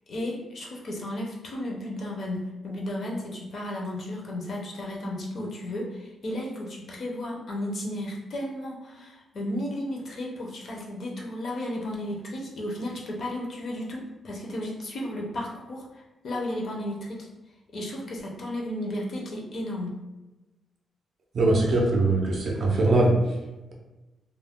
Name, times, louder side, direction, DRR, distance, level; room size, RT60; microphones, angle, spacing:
voice 1, 0.1-17.3 17.7-20.0, left 1 dB, 45° left, -2 dB, 0.6 m, -34 dB
voice 2, 21.3-23.1, right 2 dB, 45° right, -1 dB, 0.5 m, -21 dB
2.3 x 2.0 x 3.4 m, 1.1 s
wide cardioid pair, 180°, 0 cm